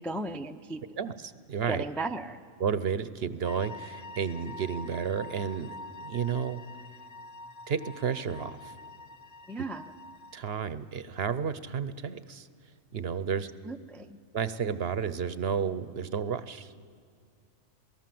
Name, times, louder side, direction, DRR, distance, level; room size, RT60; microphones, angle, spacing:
voice 1, 0.0-0.8 1.7-2.4 9.5-9.8 13.7-14.2, right 2 dB, ahead, 6 dB, 0.3 m, -35 dB
voice 2, 1.0-1.8 2.6-5.7 6.0-6.6 7.7-8.7 10.3-12.5 12.9-13.5 14.3-16.7, right 7 dB, 55° right, 14 dB, 0.9 m, -32 dB
sound 1, 3.4-10.6, left 3 dB, 90° left, 1.5 m, -46 dB
27.5 x 18.5 x 7.7 m, 2.3 s
omnidirectional pair, 1.4 m